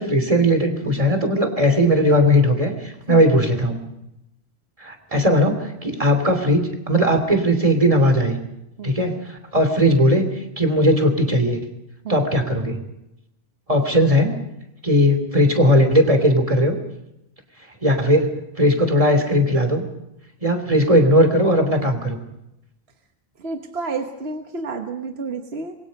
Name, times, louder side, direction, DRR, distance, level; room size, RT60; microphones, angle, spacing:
voice 1, 0.0-3.8 4.8-8.4 8.8-11.6 12.1-12.8 13.7-14.4 14.8-16.7 17.8-19.8 20.4-22.2, equal, 35° right, 7 dB, 3.1 m, -18 dB
voice 2, 23.4-25.8, right 4 dB, 75° right, 5 dB, 1.5 m, -30 dB
27.0 x 22.0 x 5.3 m, 0.86 s
omnidirectional pair, 1.1 m